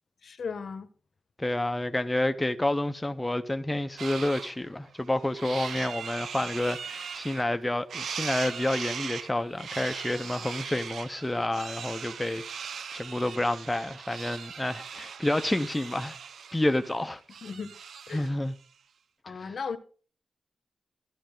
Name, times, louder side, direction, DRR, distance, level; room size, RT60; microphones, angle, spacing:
voice 1, 0.2-0.9 17.4-17.7 18.1-18.3 19.2-19.8, left 5 dB, 60° left, 1.1 m, -36 dB
voice 2, 1.4-12.4 12.9-16.2 16.5-17.2 18.1-18.5 19.3-19.6, left 1 dB, 10° left, 0.6 m, -29 dB
sound 1, 4.0-4.5 4.9-7.6 7.9-18.4, right 7 dB, 90° right, 0.8 m, -39 dB
13.0 x 12.5 x 3.8 m
wide cardioid pair, 145°, 0 cm